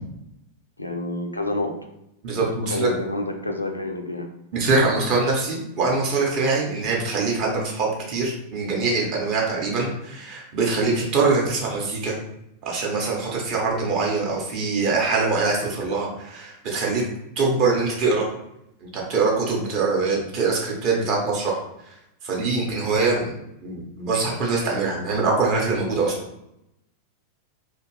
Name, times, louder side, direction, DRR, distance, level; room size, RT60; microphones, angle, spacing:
voice 1, 0.8-1.8 2.6-4.3 9.8-9.9, left 2 dB, 85° left, 5 dB, 0.3 m, -28 dB
voice 2, 2.2-2.9 4.5-12.2 12.6-17.0 17.4-18.3 18.8-21.6 22.2-23.3 23.6-26.2, right 3 dB, 40° right, -2 dB, 0.9 m, -23 dB
2.6 x 2.3 x 3.1 m, 0.82 s
figure-of-eight pair, 90°, 0 cm